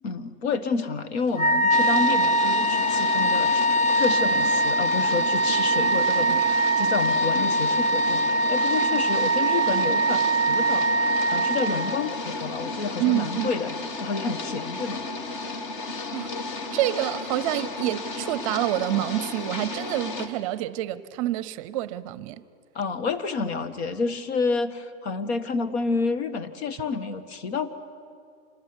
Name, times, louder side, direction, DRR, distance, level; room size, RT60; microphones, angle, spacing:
voice 1, 0.0-13.7 14.0-15.0 15.8-16.0 22.8-27.7, left 4 dB, 70° left, 2.0 m, -29 dB
Wind instrument woodwind instrument, 1.3-12.1, right 1 dB, 25° left, 1.2 m, -22 dB
sound 1, 1.7-20.3, left 3 dB, 50° left, 2.2 m, -34 dB
voice 2, 13.0-13.5 16.1-16.4 16.7-22.4, right 14 dB, 30° right, 0.6 m, -27 dB
26.5 x 21.0 x 9.9 m
supercardioid pair, 175°, 33 cm